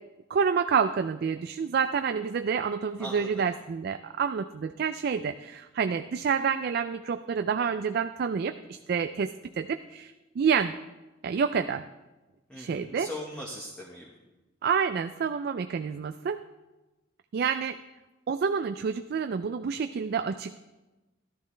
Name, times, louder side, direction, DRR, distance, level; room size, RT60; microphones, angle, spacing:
voice 1, 0.3-10.7 11.2-11.8 12.6-13.1 14.6-16.4 17.3-17.8 18.3-20.6, right 6 dB, 55° right, 9 dB, 0.3 m, -28 dB
voice 2, 3.0-3.5 12.5-14.1, left 1 dB, 5° left, -3 dB, 1.3 m, -40 dB
13.5 x 12.0 x 3.3 m, 1.1 s
head